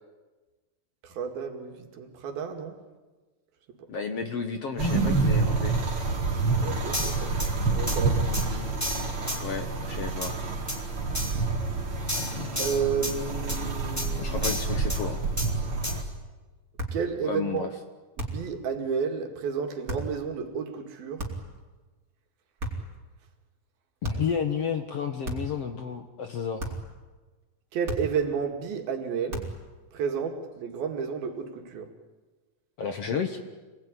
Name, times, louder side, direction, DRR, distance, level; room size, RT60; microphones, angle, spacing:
voice 1, 1.0-2.8 6.6-7.3 7.7-8.2 12.6-14.5 16.9-17.7 18.2-21.3 27.7-29.6 29.9-31.9, right 6 dB, 80° right, 4.1 m, -31 dB
voice 2, 3.9-5.7 9.4-10.3 12.2-12.5 14.2-15.2 17.2-17.7 24.0-26.8 32.8-33.4, left 6 dB, 55° left, 1.9 m, -32 dB
sound 1, 4.8-16.0, right 3 dB, 40° right, 3.7 m, -28 dB
sound 2, 6.9-7.5 7.9-8.0 8.3-8.5 8.8-9.4 10.2-10.3 10.7-10.8 11.1-11.4 12.1-13.1 13.5-13.6 14.0-14.1 14.4-15.0 15.4-15.5 15.8-15.9, left 1 dB, 5° left, 3.9 m, -31 dB
sound 3, 16.8-17.1 18.2-18.5 19.9-20.1 21.2-21.6 22.6-23.0 24.0-24.4 25.2-25.6 26.6-26.9 27.9-28.3 29.3-29.7, right 1 dB, 25° right, 4.2 m, -34 dB
27.0 x 20.0 x 9.9 m
omnidirectional pair, 4.2 m